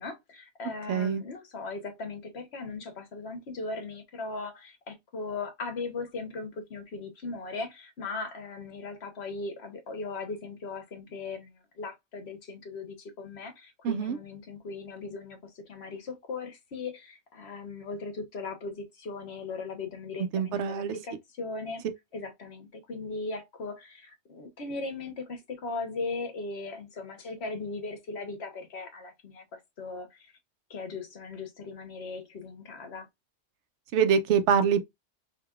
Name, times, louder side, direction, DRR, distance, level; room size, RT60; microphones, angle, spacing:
voice 1, 0.0-21.8 22.1-30.3 30.7-33.1, left 3 dB, 65° left, 1.1 m, -38 dB
voice 2, 0.9-1.2 13.8-14.2 20.3-21.0 33.9-34.8, right 7 dB, 80° right, 0.9 m, -24 dB
4.9 x 2.7 x 2.3 m
omnidirectional pair, 1.2 m